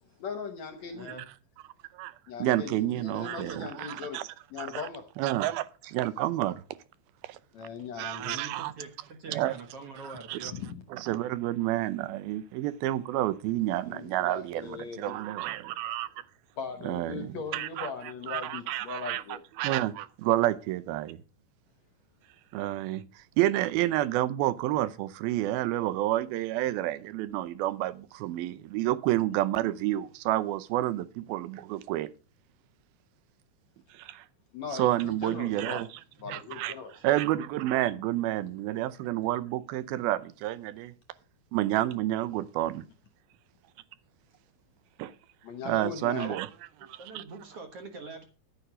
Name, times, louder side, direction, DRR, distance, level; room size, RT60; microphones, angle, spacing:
voice 1, 0.0-1.2 2.3-4.2 4.5-5.0 7.5-8.4 10.4-10.8 13.9-15.2 16.6-19.4 34.5-35.8 36.2-37.1 45.4-46.4, left 5 dB, 65° left, 1.8 m, -39 dB
voice 2, 2.4-4.2 4.6-4.8 5.2-6.6 7.3-7.4 8.0-8.7 9.3-9.6 10.0-10.5 10.9-16.1 16.8-17.3 17.5-17.9 18.3-19.2 19.6-21.2 22.5-23.0 23.4-32.1 33.9-34.2 34.7-35.9 36.3-36.7 37.0-40.9 41.5-42.9 45.0-45.1 45.7-46.5 46.9-47.2, right 15 dB, 85° right, 2.6 m, -29 dB
voice 3, 8.3-10.6 47.0-48.2, right 4 dB, 55° right, 1.8 m, -44 dB
11.5 x 9.2 x 4.9 m
omnidirectional pair, 4.3 m